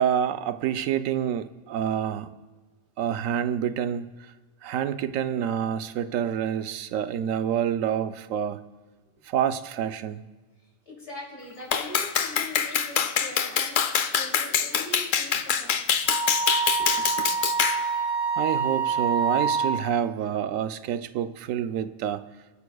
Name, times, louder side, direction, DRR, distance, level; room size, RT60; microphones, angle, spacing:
voice 1, 0.0-2.3 3.0-4.1 4.6-8.6 9.2-10.2 18.4-22.3, right 9 dB, 75° right, 11 dB, 1.0 m, -27 dB
voice 2, 10.8-15.7, left 2 dB, 55° left, -4 dB, 3.2 m, -41 dB
Clapping, 11.7-17.8, left 8 dB, 70° left, 1.0 m, -25 dB
Wind instrument woodwind instrument, 16.1-19.9, right 5 dB, 55° right, 1.4 m, -26 dB
27.0 x 9.4 x 2.3 m, 1.2 s
omnidirectional pair, 1.4 m